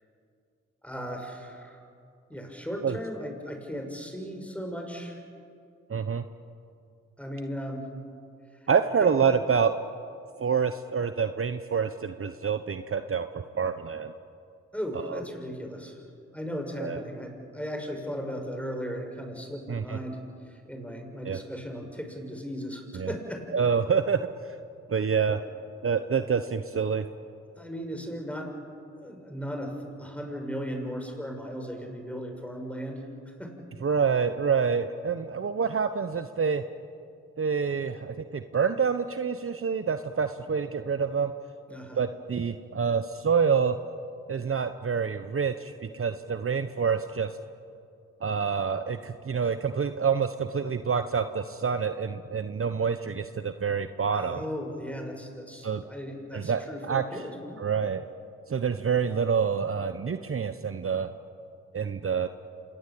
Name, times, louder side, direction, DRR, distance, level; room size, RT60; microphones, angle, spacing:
voice 1, 0.8-1.8 2.3-5.2 7.2-7.9 8.6-8.7 9.0-9.1 14.7-16.0 16.3-20.2 20.5-23.4 25.3-25.4 27.6-28.5 29.0-33.0 33.4-33.5 41.7-42.0 54.1-57.6, equal, 5° left, 3 dB, 6.9 m, -36 dB
voice 2, 5.9-6.2 8.7-9.7 10.4-14.1 15.1-15.2 16.8-17.0 19.7-20.0 21.2-21.4 23.0-23.1 23.5-24.2 24.9-25.4 25.8-27.1 33.8-36.6 37.4-41.3 42.0-43.8 44.3-47.3 48.2-54.4 55.6-55.8 56.3-57.0 57.6-58.0 58.5-61.1 61.7-62.3, right 6 dB, 45° right, 10 dB, 1.1 m, -27 dB
26.5 x 20.0 x 8.7 m, 2.4 s
supercardioid pair, 45°, 31 cm